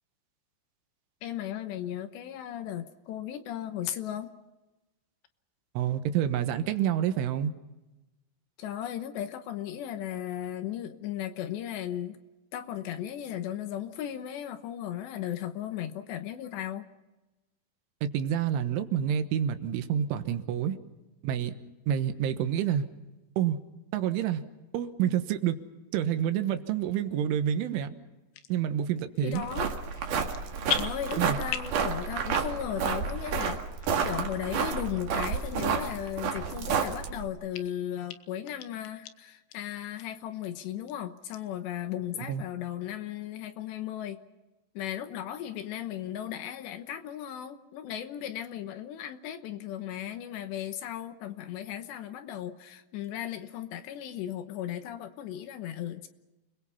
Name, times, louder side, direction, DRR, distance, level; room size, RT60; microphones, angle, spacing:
voice 1, 1.2-4.3 8.6-12.2 12.5-16.9 29.2-29.7 30.7-33.6 34.0-44.2 44.7-56.1, left 11 dB, 70° left, 9 dB, 3.1 m, -36 dB
voice 2, 5.8-7.5 18.0-20.8 21.2-21.6 21.9-22.9 23.4-23.6 23.9-24.4 24.7-25.6 25.9-27.9 28.5-29.5 31.1-31.4 42.3-42.4, right 9 dB, 80° right, 9 dB, 3.7 m, -28 dB
sound 1, 28.3-28.5 29.2-29.6 29.9-30.4 30.7-31.8 32.2-32.7 33.1-33.2 33.8-33.9 34.6-34.7 35.4-35.5 35.9-36.0 36.5-37.1 37.5-37.6 38.1-38.2 38.5-39.1 39.5-39.6 40.0-40.1 40.4-40.9 41.3-41.4, left 11 dB, 90° left, 3.6 m, -36 dB
sound 2, 29.3-37.3, right 6 dB, 55° right, 2.8 m, -30 dB
30.0 x 21.5 x 5.7 m, 1.1 s
omnidirectional pair, 5.5 m